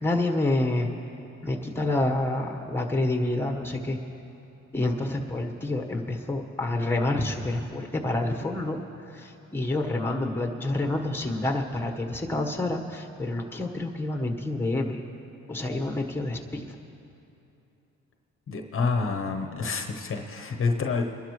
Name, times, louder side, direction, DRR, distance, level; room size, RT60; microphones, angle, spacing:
voice 1, 0.0-0.9 1.4-4.0 4.7-8.8 9.1-15.0 15.5-16.7, left 2 dB, 5° left, 2 dB, 1.3 m, -28 dB
voice 2, 18.5-21.0, left 4 dB, 45° left, 4 dB, 1.0 m, -28 dB
23.0 x 11.5 x 3.2 m, 2.9 s
cardioid pair, 90°, 30 cm